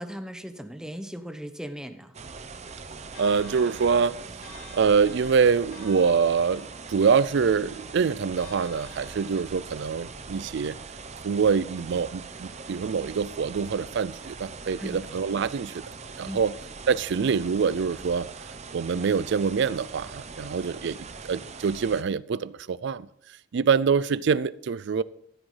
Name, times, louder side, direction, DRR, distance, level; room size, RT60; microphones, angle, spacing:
voice 1, 0.0-2.1 14.8-15.0 16.3-16.4, equal, 5° right, 0.9 m, -37 dB
sound 1, 2.1-22.0, right 4 dB, 35° right, 0.7 m, -42 dB
Church bell, 3.1-9.6, left 2 dB, 50° left, 2.5 m, -50 dB
voice 2, 3.2-4.2 4.7-10.8 11.2-15.8 16.2-16.5 16.9-18.3 18.7-23.1 23.5-25.0, right 6 dB, 65° right, 0.4 m, -25 dB
14.0 x 7.9 x 3.9 m
head